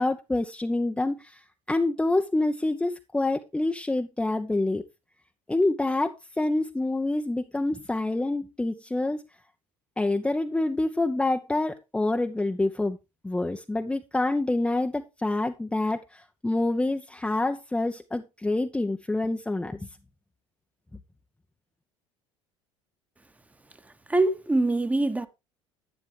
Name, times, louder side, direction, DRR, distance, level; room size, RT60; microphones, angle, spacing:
voice 1, 0.0-1.4 1.7-4.8 5.5-9.2 10.0-13.0 13.2-19.9, left 2 dB, 5° left, 0.8 m, -27 dB
voice 2, 24.1-25.3, right 2 dB, 10° right, 1.2 m, -23 dB
10.5 x 10.0 x 3.3 m
figure-of-eight pair, 65°, 15 cm